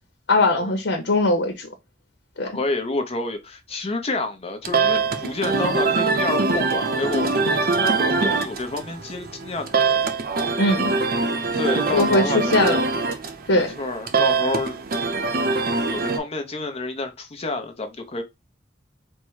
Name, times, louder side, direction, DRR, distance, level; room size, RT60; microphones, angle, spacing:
voice 1, 0.3-1.7 2.4-2.6 10.6-10.9 11.9-12.8 13.5-13.8, left 2 dB, 90° left, 0.8 m, -20 dB
voice 2, 2.5-10.0 11.5-12.8 13.5-14.8 15.9-18.2, left 2 dB, 35° left, 0.7 m, -29 dB
sound 1, 4.6-16.2, right 4 dB, 55° right, 0.6 m, -23 dB
4.4 x 2.1 x 4.6 m
head